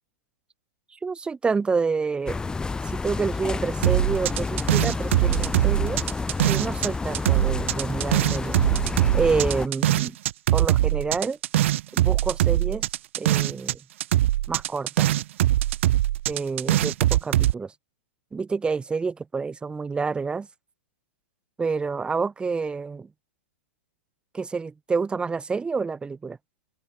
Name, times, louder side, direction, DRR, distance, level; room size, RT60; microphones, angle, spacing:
voice 1, 0.9-2.4 2.9-6.0 6.5-8.6 9.1-10.2 10.5-11.4 11.9-12.9 13.2-13.8 14.5-15.1 16.3-17.7 18.3-20.5 21.6-23.1 24.3-26.4, right 4 dB, 15° right, 7.5 m, -28 dB
sound 1, 2.3-9.7, left 4 dB, 10° left, 3.5 m, -29 dB
sound 2, 3.8-6.9 7.1-13.7 14.0-17.5, right 14 dB, 60° right, 3.0 m, -22 dB
open air
hypercardioid pair, 115°, 8 cm